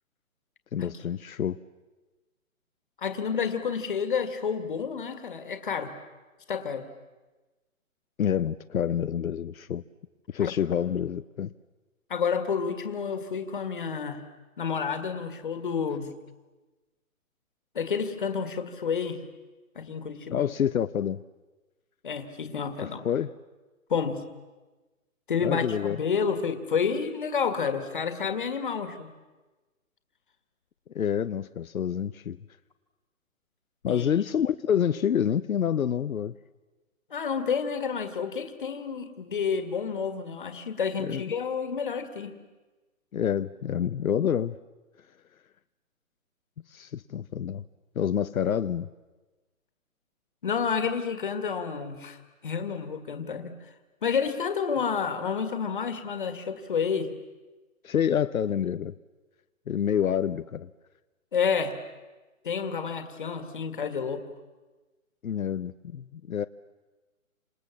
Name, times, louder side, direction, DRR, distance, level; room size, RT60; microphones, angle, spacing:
voice 1, 0.7-1.6 8.2-9.8 10.3-11.5 20.3-21.2 23.0-23.3 25.4-26.0 30.9-32.4 33.8-36.3 41.0-41.2 43.1-44.6 46.7-47.6 48.0-48.9 57.8-58.9 59.7-60.7 65.2-66.5, left 9 dB, 80° left, 12 dB, 0.8 m, -27 dB
voice 2, 3.0-5.9 6.5-6.9 10.4-10.5 12.1-14.2 14.6-16.1 17.7-19.2 19.8-20.4 22.0-23.0 23.9-24.2 25.3-29.1 33.9-34.1 37.1-42.3 50.4-52.2 52.4-53.5 54.0-57.1 61.3-61.8 62.4-64.2, left 6 dB, 35° left, 9 dB, 2.0 m, -29 dB
29.0 x 27.0 x 7.3 m, 1.2 s
hypercardioid pair, 180°, 42 cm